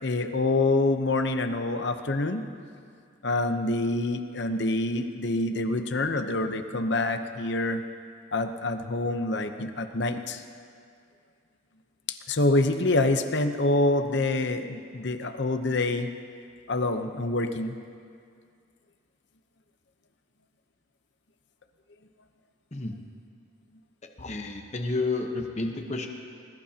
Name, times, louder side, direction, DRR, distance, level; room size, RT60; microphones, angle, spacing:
voice 1, 0.0-2.4 3.2-7.8 8.3-10.4 12.1-16.1 16.7-17.8, left 2 dB, 55° left, 8 dB, 0.8 m, -26 dB
voice 2, 24.2-26.1, left 3 dB, 35° left, 3 dB, 1.0 m, -30 dB
21.0 x 21.0 x 2.9 m, 2.3 s
head